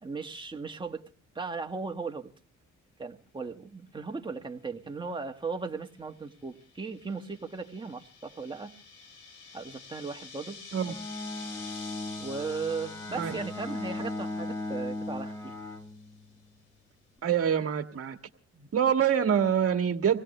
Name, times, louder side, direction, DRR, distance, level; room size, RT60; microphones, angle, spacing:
voice 1, 0.0-1.0 1.4-2.3 3.0-8.8 9.5-10.6 12.2-15.5 18.5-18.7, right 4 dB, 15° right, 4 dB, 1.8 m, -37 dB
sound 1, 6.1-15.9, left 5 dB, 85° left, 3.0 m, -49 dB
Bowed string instrument, 10.7-16.5, left 2 dB, 10° left, 1.6 m, -37 dB
voice 2, 17.2-18.2 18.7-20.2, right 8 dB, 50° right, 6 dB, 1.9 m, -25 dB
25.0 x 17.0 x 3.3 m, 0.34 s
cardioid pair, 90°, 30 cm